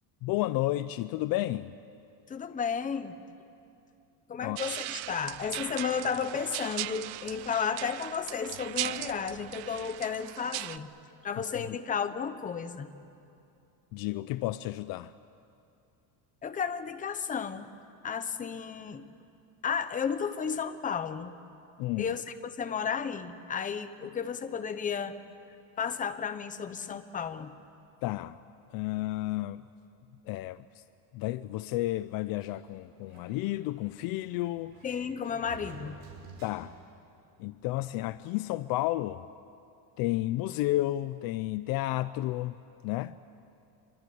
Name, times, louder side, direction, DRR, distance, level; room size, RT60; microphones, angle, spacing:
voice 1, 0.2-1.7 4.4-4.6 11.4-11.8 13.9-15.1 21.8-22.1 28.0-28.4 28.7-29.6 30.3-30.8 31.1-34.8 36.4-36.7 37.4-39.2 40.0-42.6 42.8-43.2, left 16 dB, 55° left, 14 dB, 0.6 m, -32 dB
voice 2, 2.3-3.2 4.3-10.9 11.2-12.9 16.4-17.7 18.0-19.1 19.6-21.3 22.0-22.2 22.6-25.2 25.8-27.5 34.8-36.0, left 6 dB, 20° left, 10 dB, 0.9 m, -33 dB
sound 1, 4.6-10.8, right 19 dB, 85° right, 0.8 m, -38 dB
Sliding door, 32.4-37.0, right 4 dB, 55° right, 5.6 m, -52 dB
26.5 x 23.5 x 9.5 m, 2.6 s
cardioid pair, 170°, 43 cm